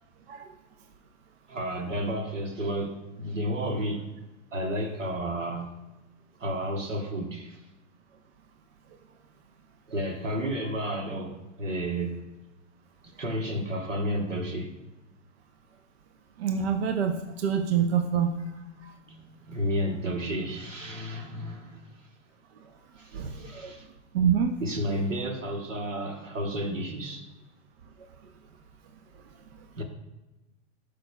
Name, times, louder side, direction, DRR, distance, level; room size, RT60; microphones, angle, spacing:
voice 1, 1.5-4.1 4.5-5.7 6.4-7.6 9.9-12.2 13.0-14.8 18.4-18.5 19.1-21.9 23.0-23.9 24.6-27.3 29.8-29.9, equal, 80° right, 1.2 m, -32 dB
voice 2, 16.4-18.3 18.8-18.9 23.1-23.7 24.1-24.6, right 7 dB, 55° right, 0.7 m, -26 dB
12.0 x 5.2 x 2.2 m
figure-of-eight pair, 100°, 38 cm